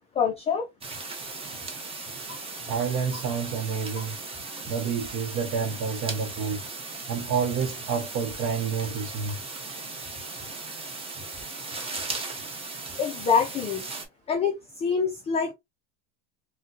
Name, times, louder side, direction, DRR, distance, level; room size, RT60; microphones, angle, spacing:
voice 1, 0.2-0.7 13.0-13.8 14.3-15.5, left 6 dB, 15° left, 0.3 m, -25 dB
sound 1, 0.8-14.1, right 3 dB, 15° right, 0.8 m, -37 dB
voice 2, 2.6-4.2 4.7-6.6 7.1-9.4, right 6 dB, 45° right, 0.8 m, -29 dB
3.6 x 2.2 x 2.7 m
supercardioid pair, 125°, 41 cm